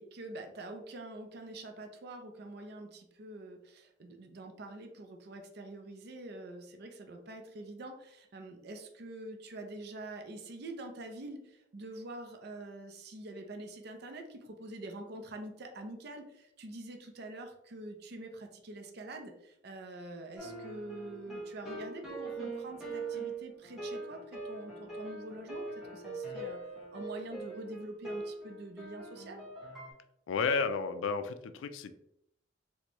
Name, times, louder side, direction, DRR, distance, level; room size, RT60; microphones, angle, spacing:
voice 1, 0.0-26.6 26.9-29.4, right 2 dB, 55° right, 4 dB, 0.5 m, -45 dB
sound 1, 20.4-29.9, right 2 dB, ahead, 0.9 m, -42 dB
voice 2, 30.3-31.9, left 5 dB, 80° left, 10 dB, 0.3 m, -32 dB
4.2 x 2.2 x 2.9 m, 0.77 s
head